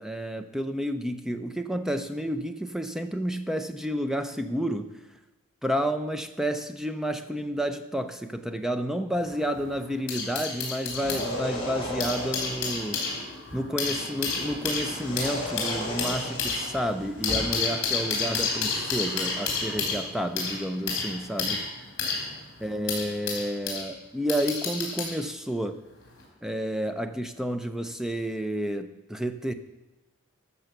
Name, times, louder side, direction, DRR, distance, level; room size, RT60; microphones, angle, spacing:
voice 1, 0.0-4.9 5.6-13.0 13.5-21.6 22.6-25.8 26.4-29.5, equal, ahead, 8 dB, 0.5 m, -30 dB
sound 1, 9.2-11.3 11.8-23.9 24.3-25.2 26.1-26.2, left 4 dB, 55° left, 3.5 m, -31 dB
sound 2, 10.8-12.7 14.9-17.6, left 1 dB, 20° left, 3.6 m, -34 dB
13.0 x 6.9 x 6.0 m, 1.0 s
head